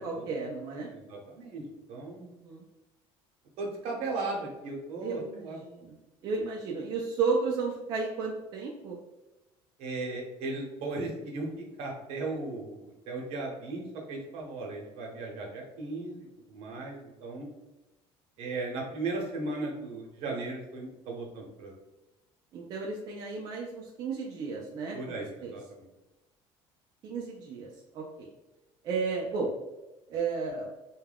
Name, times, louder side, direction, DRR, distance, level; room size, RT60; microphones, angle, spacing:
voice 1, 0.0-0.9 2.2-2.6 5.0-6.0 6.2-9.0 22.5-25.5 27.0-27.7 27.9-28.3 28.8-29.5 30.1-30.7, right 4 dB, 35° right, -2 dB, 0.3 m, -33 dB
voice 2, 0.9-1.6 1.9-2.4 3.6-5.6 9.8-13.8 14.1-17.5 18.4-21.7 24.9-25.8, right 3 dB, 65° right, 0 dB, 0.8 m, -37 dB
2.2 x 2.2 x 3.3 m, 1.0 s
cardioid pair, 175°, 11 cm